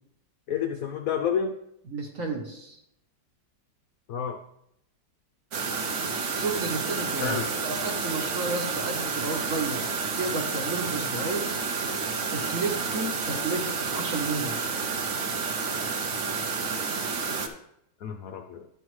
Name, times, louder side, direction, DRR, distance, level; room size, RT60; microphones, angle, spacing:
voice 1, 0.5-1.5 4.1-4.4 7.2-7.5 18.0-18.7, left 7 dB, 75° left, 4 dB, 0.8 m, -29 dB
voice 2, 1.9-2.8 6.3-7.4 7.6-9.8 10.2-11.5 12.3-14.6, right 3 dB, 50° right, 2 dB, 1.2 m, -32 dB
sound 1, 5.5-17.5, right 5 dB, 65° right, 0.7 m, -30 dB
11.0 x 5.6 x 3.1 m, 0.78 s
omnidirectional pair, 2.1 m